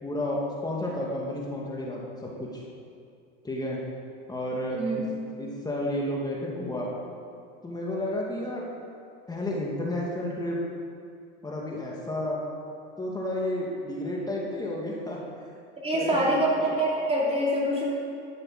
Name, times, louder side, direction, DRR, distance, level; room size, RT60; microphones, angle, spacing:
voice 1, 0.0-2.6 3.4-3.8 4.3-4.8 5.4-6.9 7.6-8.7 9.3-10.6 11.4-12.4 13.0-15.2 15.9-16.7, left 1 dB, 10° left, -3 dB, 1.8 m, -31 dB
voice 2, 15.8-17.8, right 1 dB, 15° right, -5 dB, 3.0 m, -25 dB
12.5 x 6.5 x 6.4 m, 2.3 s
supercardioid pair, 120°, 35 cm